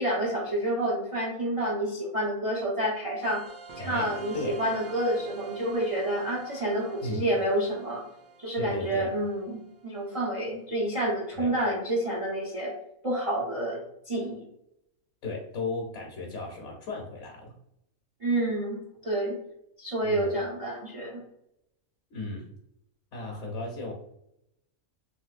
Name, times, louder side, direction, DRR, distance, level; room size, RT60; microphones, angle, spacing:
voice 1, 0.0-3.4 3.8-8.1 8.4-12.7 13.0-14.4 18.2-19.4 19.8-21.2, right 1 dB, 55° right, -3 dB, 0.3 m, -29 dB
sound 1, 3.2-10.3, right 5 dB, 75° right, 1.0 m, -46 dB
voice 2, 3.8-4.6 7.0-7.2 8.6-9.1 11.4-11.6 15.2-17.5 20.0-20.4 22.1-22.5 23.1-23.9, left 3 dB, 60° left, -1 dB, 1.0 m, -35 dB
3.3 x 2.9 x 2.4 m, 0.79 s
omnidirectional pair, 1.5 m